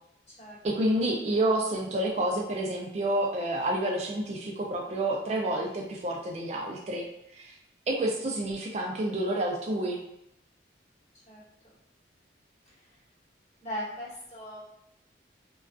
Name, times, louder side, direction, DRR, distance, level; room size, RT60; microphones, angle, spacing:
voice 1, 0.6-7.1 7.3-7.6 7.9-10.0, right 1 dB, 35° right, 0 dB, 0.3 m, -29 dB
voice 2, 13.6-14.6, equal, 35° left, -9 dB, 1.2 m, -39 dB
2.3 x 2.2 x 2.4 m, 0.80 s
head